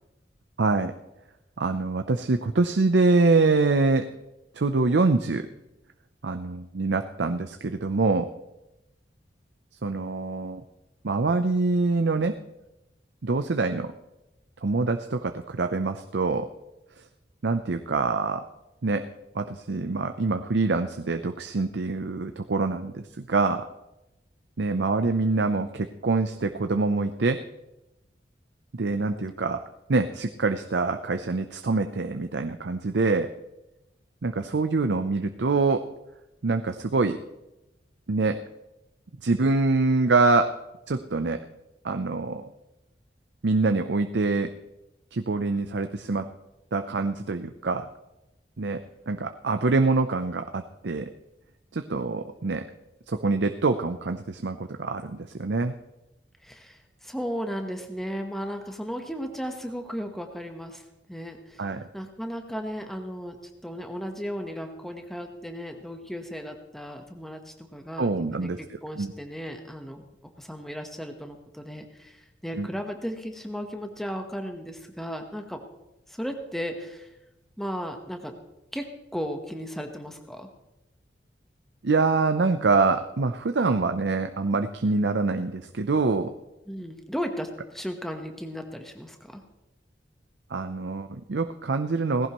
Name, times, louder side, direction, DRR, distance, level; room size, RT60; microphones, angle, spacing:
voice 1, 0.6-0.9 1.6-4.0 4.5-5.5 6.2-8.3 9.8-10.6 11.0-12.3 13.2-13.9 14.6-16.5 17.4-18.4 18.8-19.0 19.3-23.6 24.6-27.4 28.7-29.6 29.9-33.3 34.2-35.8 36.4-37.2 38.1-38.4 39.2-40.5 40.9-41.4 41.8-42.5 43.4-44.5 45.1-46.3 46.7-47.9 48.6-51.1 51.7-52.6 53.1-55.7 61.6-61.9 68.0-68.6 69.0-69.1 72.6-72.7 81.8-86.3 90.5-92.3, right 3 dB, 75° right, 7 dB, 0.6 m, -25 dB
voice 2, 56.4-60.8 61.1-63.4 63.6-68.5 68.8-75.6 76.1-77.1 77.6-78.3 78.7-80.5 86.7-89.4, equal, ahead, 4 dB, 1.1 m, -35 dB
18.0 x 15.5 x 3.0 m, 0.94 s
head